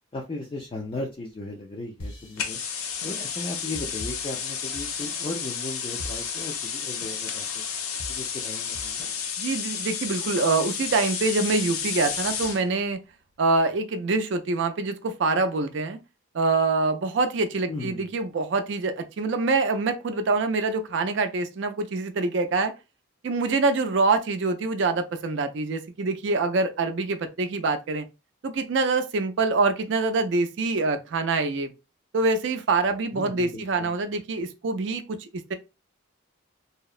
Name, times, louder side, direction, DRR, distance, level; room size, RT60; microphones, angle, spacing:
voice 1, 0.1-2.6 3.0-7.6 8.1-9.1 17.7-18.1 33.1-34.0, left 2 dB, 25° left, 0.3 m, -36 dB
sound 1, 2.0-5.2 5.5-5.6 6.0-6.5 7.0-7.5 8.0-9.8, left 1 dB, 55° left, 0.7 m, -42 dB
sound 2, 2.4-12.6, left 7 dB, 90° left, 0.5 m, -31 dB
voice 2, 9.4-13.0 13.4-16.0 16.3-22.7 23.2-28.0 28.4-31.7 32.1-35.5, right 3 dB, 60° right, 0.4 m, -25 dB
2.7 x 2.0 x 2.3 m
head